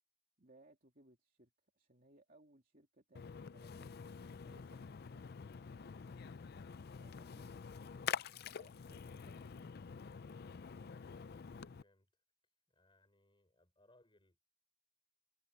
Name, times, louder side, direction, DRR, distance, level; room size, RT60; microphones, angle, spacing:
voice 1, 0.4-3.9 4.4-5.2 7.0-7.5 8.4-9.7, right 2 dB, 45° right, 3.1 m, -66 dB
Splash splatter, 3.2-11.8, left 7 dB, 50° left, 0.5 m, -47 dB
voice 2, 11.3-12.1 12.7-14.4, left 1 dB, 25° left, 5.8 m, -72 dB
head